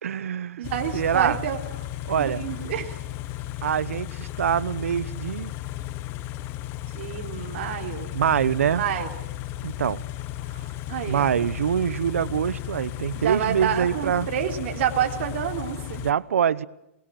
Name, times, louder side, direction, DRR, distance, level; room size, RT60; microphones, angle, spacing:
voice 1, 0.0-0.6 0.9-1.4 2.1-2.4 3.6-5.5 8.1-8.8 9.6-10.0 10.5-10.7 11.1-14.3 16.0-16.7, right 8 dB, 80° right, 1.0 m, -24 dB
Car / Idling, 0.6-16.1, left 14 dB, 30° left, 1.0 m, -35 dB
voice 2, 0.6-1.6 2.2-3.0 6.9-8.1 8.7-9.1 10.9-11.4 13.1-16.0, right 10 dB, 55° right, 3.8 m, -28 dB
27.0 x 21.5 x 7.8 m
hypercardioid pair, 145°, 7 cm